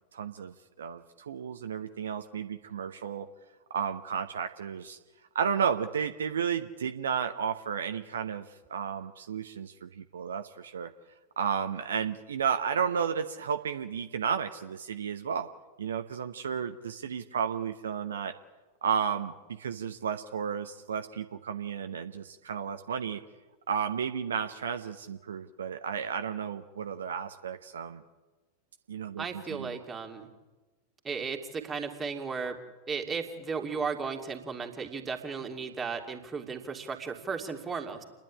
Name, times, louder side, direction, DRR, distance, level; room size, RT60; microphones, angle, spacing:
voice 1, 0.1-3.3 3.7-5.0 5.3-8.4 8.7-10.9 11.4-15.5 15.8-18.3 18.8-23.2 23.7-28.0 28.9-29.8, right 7 dB, 65° right, 7 dB, 0.9 m, -33 dB
voice 2, 29.2-30.3 31.0-32.6 32.9-38.0, right 5 dB, 20° right, 3 dB, 2.7 m, -35 dB
28.5 x 10.5 x 10.0 m, 1.2 s
figure-of-eight pair, 90°, 0 cm